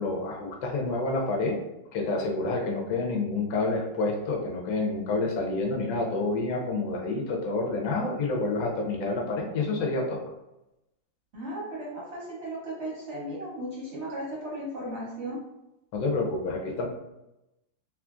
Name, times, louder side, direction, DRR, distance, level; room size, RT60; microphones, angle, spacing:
voice 1, 0.0-1.6 1.9-10.3 15.9-16.9, left 3 dB, 65° left, 0 dB, 0.9 m, -28 dB
voice 2, 11.3-15.4, right 1 dB, 55° right, -6 dB, 0.7 m, -36 dB
3.0 x 2.4 x 2.4 m, 0.92 s
omnidirectional pair, 2.0 m